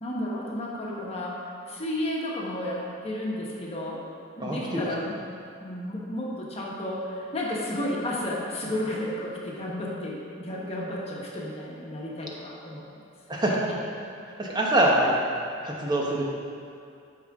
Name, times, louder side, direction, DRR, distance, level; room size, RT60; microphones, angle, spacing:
voice 1, 0.0-4.0 4.4-5.1 5.6-12.8 14.8-14.9, left 1 dB, 30° left, -4 dB, 1.4 m, -32 dB
voice 2, 4.4-4.9 13.3-13.7 14.4-15.1 15.6-16.2, right 1 dB, 20° right, -3 dB, 1.2 m, -24 dB
12.0 x 5.9 x 3.7 m, 2.5 s
head